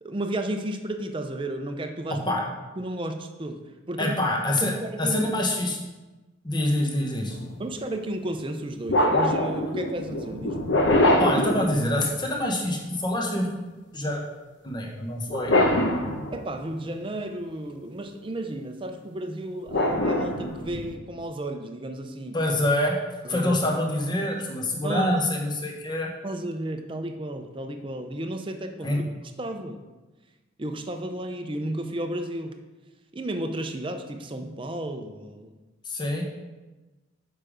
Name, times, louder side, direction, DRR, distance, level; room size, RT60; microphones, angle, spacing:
voice 1, 0.0-2.3 2.8-3.6 3.9-4.2 4.6-5.2 7.6-10.7 16.3-22.4 23.2-23.6 24.8-25.1 26.2-29.1 29.4-29.8 30.6-32.6 33.1-35.5, right 1 dB, 25° right, 6 dB, 0.5 m, -33 dB
voice 2, 2.1-2.4 4.0-4.7 5.0-5.8 6.4-7.4 11.2-13.5 13.9-14.2 14.6-15.5 22.3-22.9 23.3-26.1 28.8-29.0 35.8-36.2, left 1 dB, 20° left, -1 dB, 1.1 m, -26 dB
sound 1, 7.3-7.5 8.9-12.3 15.3-16.7 19.7-21.0, left 1 dB, 60° left, 0.9 m, -24 dB
6.8 x 5.1 x 4.9 m, 1.2 s
head